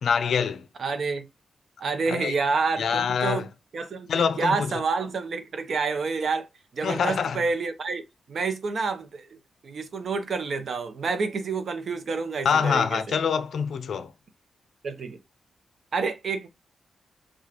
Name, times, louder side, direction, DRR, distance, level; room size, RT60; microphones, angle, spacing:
voice 1, 0.0-0.6 2.1-2.3 2.8-3.4 4.1-4.7 6.8-7.4 12.4-14.1, left 6 dB, 75° left, 0.5 m, -25 dB
voice 2, 0.8-1.3 1.8-3.5 3.7-6.5 6.7-8.0 8.3-9.3 9.6-13.2 14.8-15.2 15.9-16.5, right 4 dB, 60° right, 0.7 m, -28 dB
4.9 x 2.3 x 2.9 m
wide cardioid pair, 115°, 0 cm